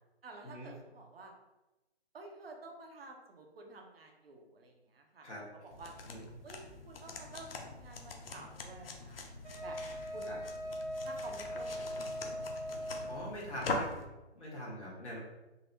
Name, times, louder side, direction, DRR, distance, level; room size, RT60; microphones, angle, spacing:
voice 1, 0.2-1.3 2.1-5.3 5.6-5.9 6.4-6.6 6.9-9.2 9.6-10.4 11.0-12.8, right 2 dB, 60° right, 2 dB, 0.7 m, -51 dB
sound 1, 5.7-14.0, left 3 dB, 60° left, 0.6 m, -43 dB
Wind instrument woodwind instrument, 9.4-13.3, equal, 85° right, 1.1 m, -40 dB
voice 2, 13.1-13.9 14.4-15.2, equal, 90° left, -5 dB, 1.3 m, -43 dB
3.9 x 2.1 x 2.7 m, 1.0 s
hypercardioid pair, 155°, 33 cm